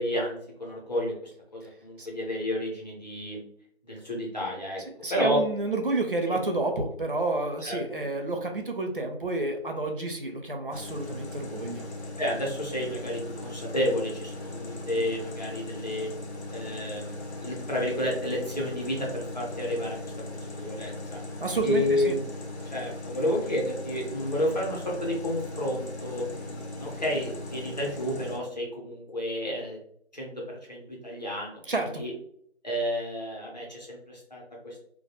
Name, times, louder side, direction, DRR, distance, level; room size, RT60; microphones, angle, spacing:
voice 1, 0.0-3.4 3.8-4.8 5.1-5.4 6.3-6.4 7.6-7.8 12.2-16.1 16.5-21.2 21.6-22.2 22.6-29.8 30.1-31.6 31.9-32.1 32.6-34.8, left 1 dB, 40° left, -2 dB, 0.7 m, -31 dB
voice 2, 5.0-11.9 21.4-22.1 31.7-32.0, right 2 dB, 55° right, 4 dB, 0.4 m, -30 dB
sound 1, 10.7-28.4, left 2 dB, 85° left, 0.8 m, -39 dB
2.4 x 2.2 x 2.8 m, 0.66 s
figure-of-eight pair, 170°, 33 cm